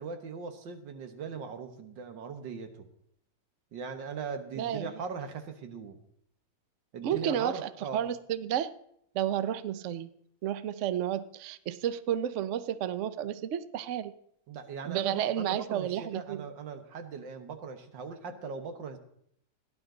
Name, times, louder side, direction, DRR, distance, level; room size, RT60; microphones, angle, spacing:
voice 1, 0.0-2.9 3.7-6.0 6.9-8.0 14.5-19.0, right 5 dB, 80° right, 8 dB, 1.9 m, -39 dB
voice 2, 4.5-4.9 7.0-8.7 9.1-10.1 10.4-14.1 14.8-16.5, right 10 dB, 60° right, 14 dB, 0.8 m, -31 dB
17.5 x 11.0 x 3.9 m, 0.71 s
omnidirectional pair, 2.0 m